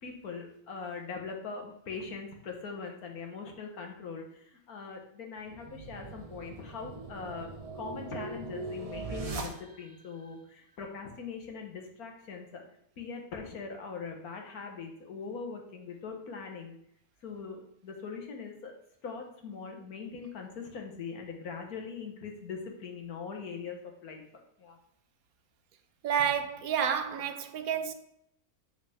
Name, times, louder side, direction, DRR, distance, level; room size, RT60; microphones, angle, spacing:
voice 1, 0.0-12.6 13.0-16.8 17.2-18.7 19.0-24.2 24.6-24.8, left 5 dB, 80° left, 1.8 m, -41 dB
sound 1, 5.5-10.1, right 3 dB, 35° right, 0.6 m, -40 dB
voice 2, 26.0-27.9, right 8 dB, 75° right, 1.2 m, -30 dB
7.8 x 6.0 x 3.6 m
omnidirectional pair, 1.6 m